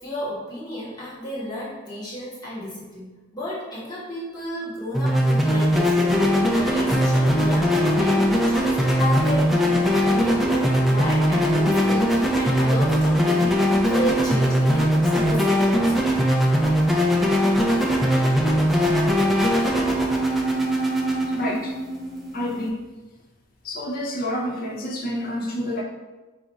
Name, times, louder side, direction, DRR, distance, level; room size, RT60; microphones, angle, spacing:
voice 1, 0.0-13.6 13.9-16.0, equal, 20° left, -7 dB, 1.1 m, -32 dB
sound 1, 4.9-22.7, equal, ahead, 0.4 m, -20 dB
voice 2, 21.3-21.8 22.3-22.8 23.6-25.8, equal, 45° left, 1 dB, 0.6 m, -28 dB
4.9 x 2.5 x 4.0 m, 1.2 s
head